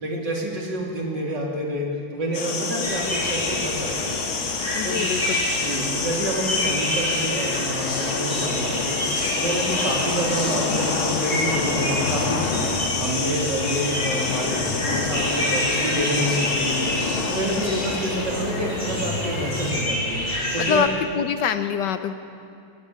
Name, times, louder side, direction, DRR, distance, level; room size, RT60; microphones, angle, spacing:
voice 1, 0.0-1.9 2.1-4.2 4.8-5.3 5.6-20.9, right 1 dB, 60° right, -1 dB, 3.9 m, -28 dB
sound 1, 2.3-19.7, left 4 dB, 90° left, 2.6 m, -28 dB
sound 2, 2.8-20.8, left 1 dB, 20° left, 7.4 m, -28 dB
voice 2, 4.7-5.4 17.6-17.8 20.6-22.1, left 8 dB, 70° left, 10 dB, 1.2 m, -25 dB
27.0 x 17.0 x 7.0 m, 2.6 s
omnidirectional pair, 2.2 m